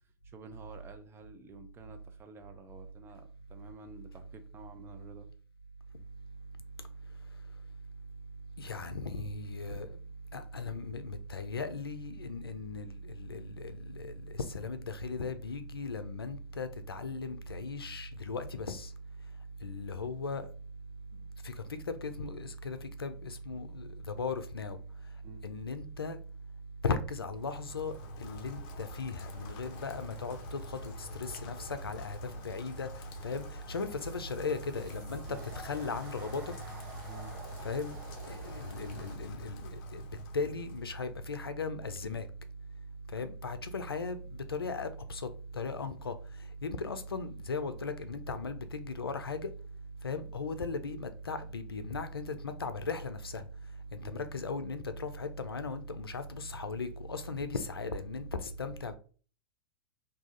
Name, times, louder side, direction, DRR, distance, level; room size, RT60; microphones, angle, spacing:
voice 1, 0.2-5.3 25.2-25.4 35.3-35.5 37.1-37.4 54.0-54.3, right 3 dB, 20° right, 0.5 m, -51 dB
voice 2, 8.6-9.9 10.3-18.9 19.6-20.5 21.4-21.5 21.9-24.8 25.4-26.2 26.8-27.9 28.2-32.9 33.2-35.2 35.6-36.4 37.6-38.0 38.3-40.0 40.3-42.2 43.1-45.3 45.5-46.1 46.6-49.5 50.0-53.4 53.9-58.9, left 3 dB, 90° left, 0.4 m, -37 dB
Rain, 27.3-41.1, left 2 dB, 45° left, 0.6 m, -48 dB
sound 1, 29.3-39.2, right 2 dB, 55° right, 1.3 m, -53 dB
2.7 x 2.4 x 3.8 m
hypercardioid pair, 105°, 12 cm